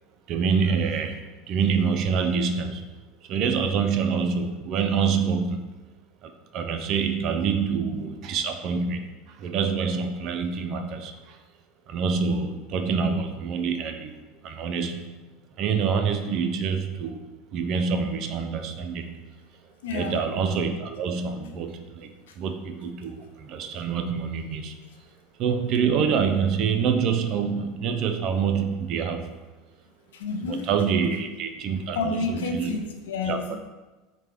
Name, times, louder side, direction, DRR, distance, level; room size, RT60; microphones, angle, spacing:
voice 1, 0.3-2.8 3.3-5.7 6.2-11.4 11.9-14.1 14.4-15.2 15.6-19.2 19.9-24.7 25.4-29.3 30.4-32.9 33.2-33.6, right 6 dB, 50° right, 7 dB, 0.3 m, -26 dB
voice 2, 19.8-20.2 22.3-22.4 30.1-30.7 31.9-33.6, left 4 dB, 85° left, 4 dB, 0.5 m, -30 dB
4.9 x 2.2 x 3.3 m, 1.2 s
supercardioid pair, 105°, 0 cm